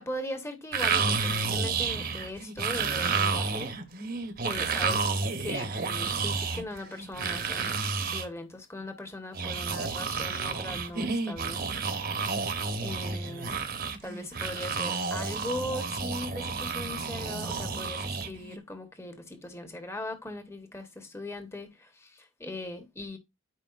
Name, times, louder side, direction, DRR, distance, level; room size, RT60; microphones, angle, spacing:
voice 1, 0.0-3.7 4.4-5.1 5.4-11.7 12.8-13.5 14.0-23.2, left 1 dB, 15° left, 1.2 m, -39 dB
sound 1, 0.7-8.3 9.3-18.6, right 4 dB, 45° right, 1.0 m, -31 dB
12.5 x 4.9 x 2.5 m
head